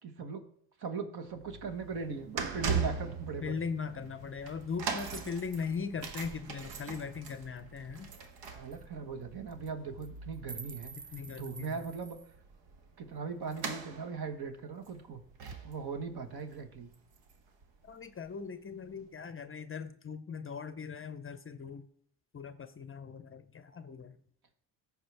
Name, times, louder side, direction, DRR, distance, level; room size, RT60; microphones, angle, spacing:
voice 1, 0.0-0.4 0.8-3.5 8.5-10.9 11.3-12.2 13.0-15.2 15.6-16.9, right 5 dB, 55° right, 7 dB, 1.5 m, -39 dB
sound 1, 1.3-17.6 17.9-18.1 18.9-19.0, right 5 dB, 70° right, 1.3 m, -41 dB
voice 2, 3.4-8.1 11.1-11.8 17.8-21.9 22.3-24.2, left 6 dB, 30° left, 12 dB, 0.6 m, -39 dB
sound 2, 7.6-7.7 7.9-8.0 8.2-8.4 8.7-8.8 9.5-9.7 10.0-12.3, right 4 dB, 20° right, 0.4 m, -49 dB
14.0 x 4.9 x 3.4 m, 0.64 s
supercardioid pair, 65°, 46 cm